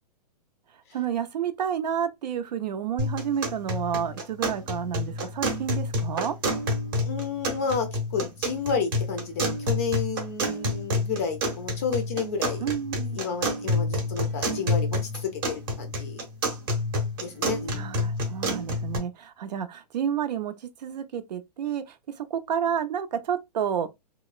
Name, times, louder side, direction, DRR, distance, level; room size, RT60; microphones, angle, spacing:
voice 1, 0.9-6.4 12.6-13.2 17.7-20.5 20.8-23.9, right 8 dB, 85° right, 0.6 m, -30 dB
sound 1, 3.0-19.0, left 1 dB, 30° right, 0.7 m, -29 dB
voice 2, 7.0-12.6 13.1-16.3 17.2-17.9, left 5 dB, 20° left, 0.4 m, -31 dB
2.9 x 2.0 x 2.3 m
hypercardioid pair, 175°, 21 cm